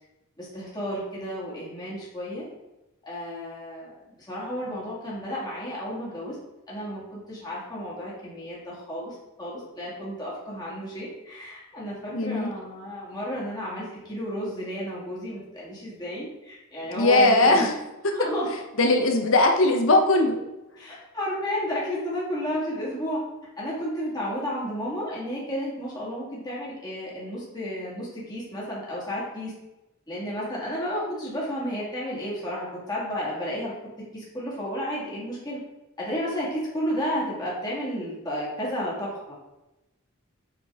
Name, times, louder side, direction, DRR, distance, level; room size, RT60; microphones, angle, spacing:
voice 1, 0.4-2.5 3.0-6.4 6.7-17.7 18.1-18.5 20.8-23.2 23.6-29.5 30.1-35.6 36.0-39.3, equal, 20° left, -7 dB, 2.3 m, -32 dB
voice 2, 12.1-12.5 16.9-17.7 18.8-20.3, left 2 dB, 70° left, 3 dB, 1.1 m, -19 dB
8.6 x 4.3 x 3.6 m, 0.99 s
head